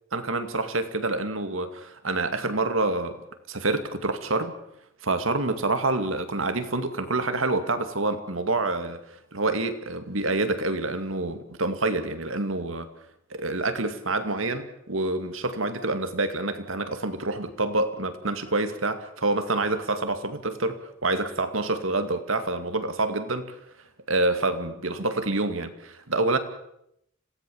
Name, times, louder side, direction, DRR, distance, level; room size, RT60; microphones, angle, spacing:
voice 1, 0.1-4.5 5.0-9.0 9.3-12.9 13.3-23.5 24.1-26.4, right 2 dB, 80° right, 9 dB, 2.4 m, -27 dB
26.0 x 17.5 x 7.2 m, 0.78 s
head